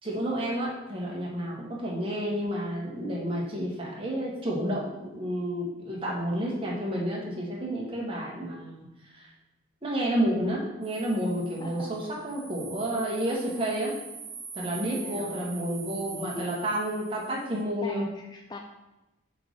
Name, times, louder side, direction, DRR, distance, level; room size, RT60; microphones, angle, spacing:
voice 1, 0.0-8.8 9.1-9.3 9.8-14.0 14.5-18.0, right 1 dB, 25° right, -4 dB, 1.5 m, -30 dB
sound 1, 10.8-17.6, right 6 dB, 65° right, 1.0 m, -43 dB
voice 2, 11.6-11.9 14.6-16.8 17.8-18.6, left 2 dB, 20° left, 3 dB, 0.3 m, -41 dB
5.8 x 3.9 x 5.1 m, 1.0 s
head